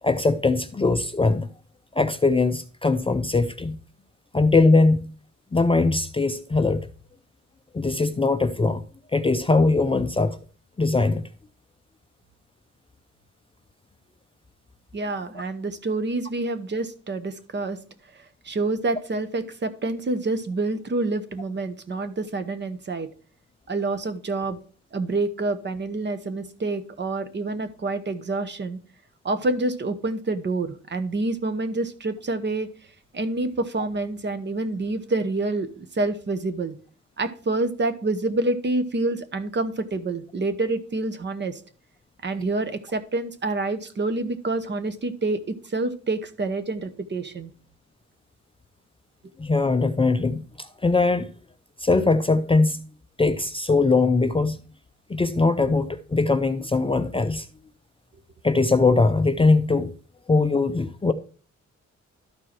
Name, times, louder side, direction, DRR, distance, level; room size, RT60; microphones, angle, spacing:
voice 1, 0.0-1.5 1.9-3.8 4.3-5.1 5.5-6.9 7.7-8.8 9.1-10.4 10.8-11.2 49.4-51.3 51.8-52.8 53.2-54.6 55.1-57.5 58.4-59.9 60.3-61.1, left 3 dB, 20° left, 0.5 m, -21 dB
voice 2, 14.9-17.8 18.1-23.1 23.7-24.6 24.9-28.8 29.2-32.7 33.1-36.7 37.2-41.6 42.2-47.5, right 2 dB, 40° right, 1.0 m, -27 dB
12.5 x 4.6 x 4.5 m
wide cardioid pair, 145°, 29 cm